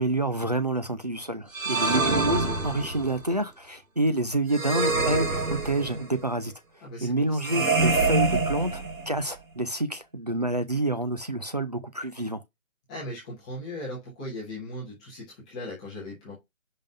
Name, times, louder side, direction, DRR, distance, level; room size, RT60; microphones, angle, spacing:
voice 1, 0.0-6.5 7.0-12.4, right 2 dB, 30° right, 0.5 m, -28 dB
sound 1, 1.5-3.2 4.5-6.2 7.4-9.3, right 3 dB, 75° right, 2.0 m, -26 dB
voice 2, 1.7-2.3 6.8-7.7 12.9-16.3, left 1 dB, 5° left, 1.0 m, -38 dB
5.4 x 3.7 x 5.2 m
figure-of-eight pair, 155°, 41 cm